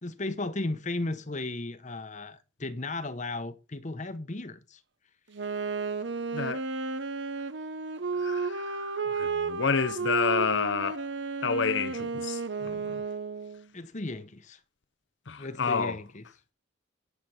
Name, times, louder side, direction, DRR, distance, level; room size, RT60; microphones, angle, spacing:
voice 1, 0.0-4.8 13.7-14.6 15.4-16.2, left 2 dB, 35° left, 1.0 m, -35 dB
Wind instrument woodwind instrument, 5.3-13.7, right 4 dB, 60° right, 0.9 m, -33 dB
voice 2, 8.2-11.1 11.4-13.0 15.3-16.0, left 5 dB, 60° left, 0.7 m, -30 dB
10.5 x 7.7 x 5.6 m
head